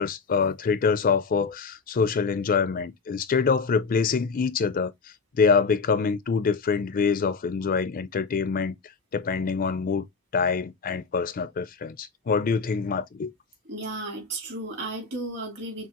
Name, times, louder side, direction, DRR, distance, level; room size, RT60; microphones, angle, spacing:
voice 1, 0.0-4.9 5.3-8.7 9.1-10.0 10.3-13.3, left 5 dB, 40° left, 0.4 m, -25 dB
voice 2, 13.7-15.9, right 2 dB, 55° right, 2.9 m, -34 dB
6.1 x 2.4 x 2.9 m
head